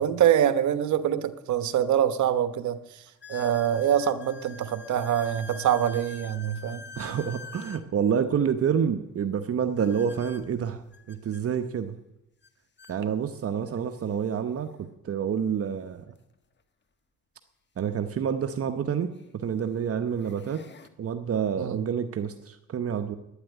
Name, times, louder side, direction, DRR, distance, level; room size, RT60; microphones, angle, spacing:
voice 1, 0.0-3.0 3.3-6.8 21.6-21.8, right 10 dB, 70° right, 11 dB, 1.2 m, -25 dB
sound 1, 1.5-1.6 2.2-2.3 3.2-7.9 9.8-11.4 12.4-12.5 12.8-13.0 13.8-13.9 16.1-16.2 18.3-18.4 19.1-19.4 19.9-20.9, left 3 dB, 35° left, 1.3 m, -45 dB
voice 2, 7.0-10.8 11.1-11.9 12.9-14.7 15.0-16.1 17.8-20.6 21.0-23.2, right 7 dB, 50° right, 8 dB, 1.0 m, -28 dB
12.0 x 10.0 x 9.5 m, 0.87 s
cardioid pair, 90°, 30 cm